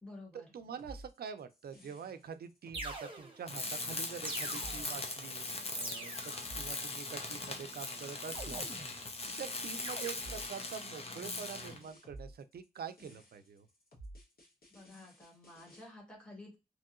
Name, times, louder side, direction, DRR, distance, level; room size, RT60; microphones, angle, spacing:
voice 1, 0.0-0.5 14.7-16.5, left 2 dB, 5° left, -3 dB, 1.6 m, -51 dB
voice 2, 0.5-5.4 5.7-8.6 9.4-13.7, right 7 dB, 90° right, 10 dB, 0.4 m, -45 dB
sound 1, 0.8-15.9, right 1 dB, 75° left, 1.3 m, -54 dB
sound 2, 2.1-2.2 2.7-3.6 4.2-5.1 5.7-6.5 8.3-9.1 9.8-10.1, right 2 dB, 35° right, 0.9 m, -44 dB
Tools, 3.5-11.8, left 3 dB, 40° left, 0.6 m, -40 dB
3.0 x 2.7 x 2.4 m, 0.25 s
wide cardioid pair, 110°, 15 cm